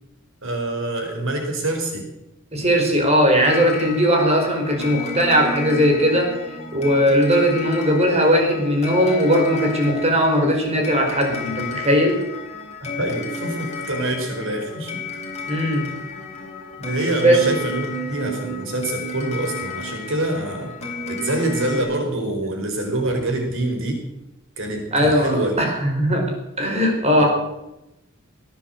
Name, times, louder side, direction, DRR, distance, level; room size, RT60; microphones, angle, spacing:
voice 1, 0.4-2.1 12.8-15.2 16.8-20.7 21.1-24.0 24.6-25.6 27.2-27.3, right 1 dB, 65° right, 3 dB, 4.8 m, -26 dB
voice 2, 2.5-6.3 6.7-12.2 15.5-15.9 17.2-17.4 24.9-26.3 26.6-27.3, equal, 30° right, 2 dB, 4.9 m, -18 dB
sound 1, 3.4-21.8, left 2 dB, 35° left, 3.8 m, -32 dB
18.5 x 9.8 x 7.9 m, 0.90 s
head